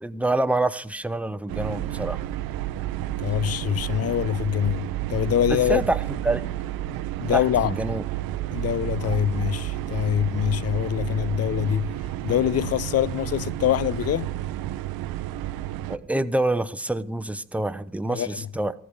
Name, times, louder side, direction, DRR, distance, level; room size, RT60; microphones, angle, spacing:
voice 1, 0.0-2.2 5.5-6.4 7.3-8.0 15.9-18.7, right 2 dB, 5° right, 0.9 m, -26 dB
sound 1, 1.5-16.0, right 14 dB, 55° right, 0.8 m, -31 dB
voice 2, 3.2-5.8 7.2-7.7 8.5-11.9 12.2-14.3 18.1-18.5, left 11 dB, 35° left, 0.6 m, -24 dB
15.5 x 14.5 x 5.1 m
figure-of-eight pair, 40°, 42 cm